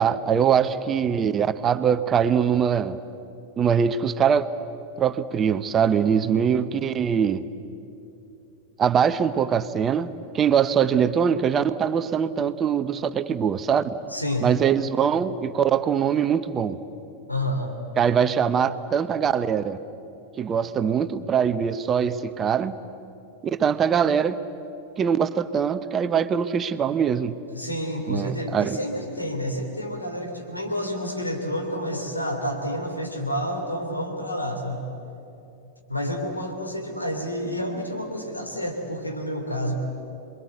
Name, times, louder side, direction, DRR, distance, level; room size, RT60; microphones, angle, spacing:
voice 1, 0.0-3.0 3.6-4.5 5.0-7.5 8.8-10.1 10.3-13.8 14.4-16.8 18.0-19.8 20.4-22.8 23.4-24.4 25.0-27.3 28.1-28.8, right 7 dB, 25° right, 12 dB, 0.8 m, -22 dB
voice 2, 14.1-14.5 17.3-17.7 27.5-34.8 35.9-39.7, equal, 85° left, 2 dB, 3.4 m, -29 dB
27.0 x 22.5 x 8.0 m, 2.8 s
figure-of-eight pair, 90°, 0 cm